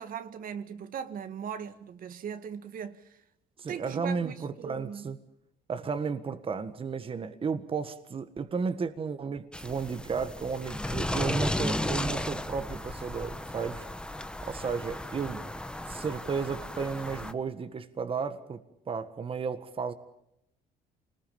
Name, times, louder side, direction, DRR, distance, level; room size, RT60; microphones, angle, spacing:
voice 1, 0.0-3.2 3.7-5.1, right 7 dB, 55° right, 1.8 m, -39 dB
voice 2, 3.6-5.2 5.7-13.9 14.5-15.4 15.9-18.6 18.9-19.9, right 5 dB, 35° right, 1.6 m, -33 dB
sound 1, 9.5-17.3, left 1 dB, 5° left, 1.1 m, -34 dB
27.0 x 20.0 x 7.1 m
cardioid pair, 110°, 17 cm